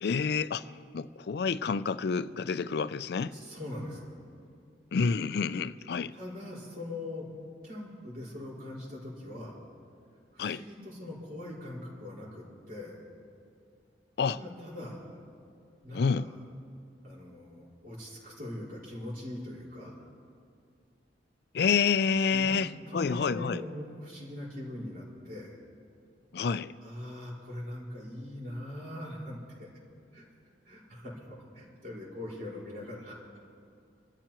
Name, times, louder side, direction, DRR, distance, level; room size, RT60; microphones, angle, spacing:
voice 1, 0.0-3.4 4.9-6.1 10.4-10.6 14.2-14.4 15.9-16.3 21.5-23.6 26.3-26.7, left 5 dB, 60° left, 15 dB, 0.4 m, -28 dB
voice 2, 3.2-4.1 6.1-7.3 7.6-9.6 10.3-13.0 14.2-15.2 15.8-16.3 17.0-20.0 22.3-25.6 26.8-29.7 30.1-30.2 30.6-33.2, left 1 dB, 50° right, -5 dB, 4.7 m, -41 dB
26.5 x 13.5 x 3.0 m, 2.4 s
head